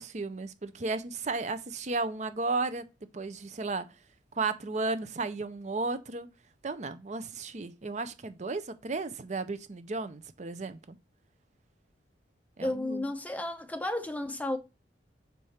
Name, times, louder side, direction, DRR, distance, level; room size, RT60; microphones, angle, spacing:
voice 1, 0.0-2.8 3.1-3.8 4.4-6.3 6.6-10.8 12.6-13.0, right 3 dB, 40° right, 0.5 m, -34 dB
voice 2, 12.6-14.6, left 1 dB, 10° left, 0.7 m, -32 dB
6.7 x 4.9 x 4.3 m
head